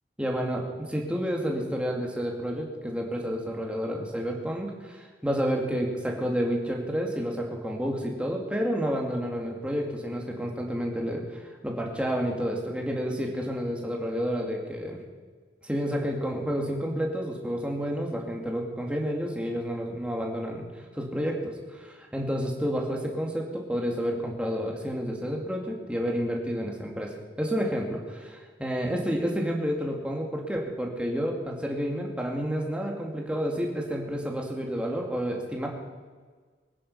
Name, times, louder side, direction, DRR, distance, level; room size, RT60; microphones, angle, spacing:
voice 1, 0.2-15.0 15.6-20.7 20.9-35.7, equal, 5° right, 0 dB, 2.3 m, -30 dB
23.5 x 9.9 x 5.5 m, 1.5 s
head